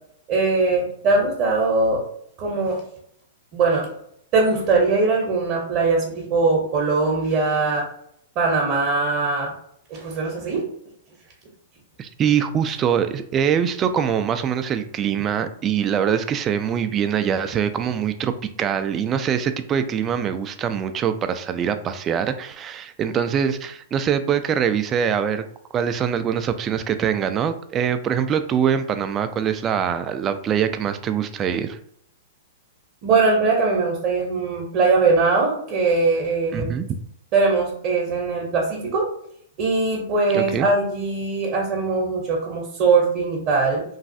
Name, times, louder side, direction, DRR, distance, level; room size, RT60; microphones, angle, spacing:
voice 1, 0.3-2.0 2.4-2.8 3.5-3.9 4.3-7.9 8.4-9.5 9.9-10.7 33.0-36.7 37.3-39.1 39.6-43.8, right 3 dB, 45° right, -1 dB, 0.8 m, -21 dB
voice 2, 12.0-18.3 18.6-25.4 25.7-31.8 36.5-36.9 40.3-40.7, right 8 dB, 25° right, 10 dB, 0.3 m, -23 dB
3.1 x 2.3 x 2.6 m, 0.70 s
hypercardioid pair, 125°, 0 cm